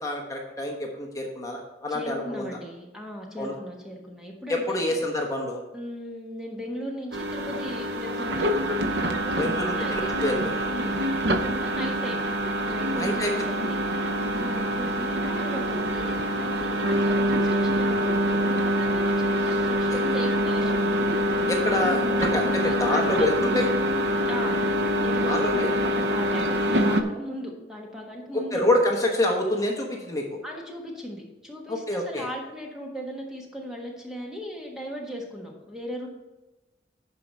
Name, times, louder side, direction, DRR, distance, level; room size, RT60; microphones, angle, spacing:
voice 1, 0.0-2.5 3.4-3.5 4.5-5.6 9.4-10.7 13.0-13.5 14.3-14.5 19.9-20.0 21.5-23.7 25.3-25.7 28.3-30.4 31.7-32.3, left 1 dB, 20° left, 0 dB, 1.2 m, -27 dB
voice 2, 1.9-4.9 5.7-8.7 9.1-10.1 10.7-12.2 12.6-13.8 14.4-21.0 22.6-23.7 24.3-24.6 25.0-28.8 30.4-36.1, equal, 5° right, -1 dB, 1.4 m, -37 dB
sound 1, 7.1-27.0, equal, 70° right, 0.7 m, -25 dB
11.0 x 4.7 x 5.4 m, 1.1 s
head